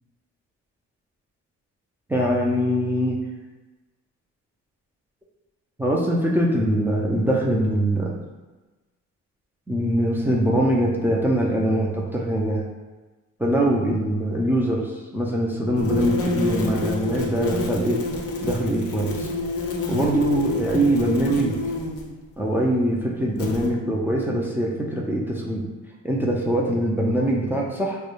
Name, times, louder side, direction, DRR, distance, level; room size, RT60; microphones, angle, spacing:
voice 1, 2.1-3.2 5.8-8.2 9.7-12.6 13.4-18.0 18.4-19.3 19.9-21.6 22.4-25.7 26.0-28.0, right 1 dB, 5° right, -3 dB, 0.3 m, -23 dB
sound 1, 15.8-22.1 23.4-23.7, left 2 dB, 50° left, 0.5 m, -28 dB
2.2 x 2.1 x 2.9 m, 1.2 s
cardioid pair, 90°, 30 cm